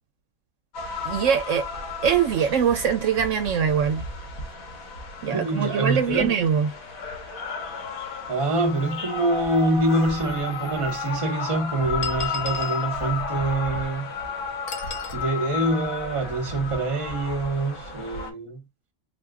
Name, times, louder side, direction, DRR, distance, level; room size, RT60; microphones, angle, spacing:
sound 1, 0.7-18.3, left 4 dB, 90° left, 1.5 m, -33 dB
voice 1, 1.0-1.7 2.0-4.0 5.2-6.7, right 7 dB, 70° right, 0.9 m, -22 dB
voice 2, 5.3-6.3 8.3-14.1 15.1-18.6, right 2 dB, 25° right, 0.9 m, -25 dB
sound 2, 10.0-10.1 11.0-11.1 12.0-12.9 14.7-15.2, left 4 dB, 70° left, 1.3 m, -35 dB
4.0 x 2.2 x 3.6 m
omnidirectional pair, 1.4 m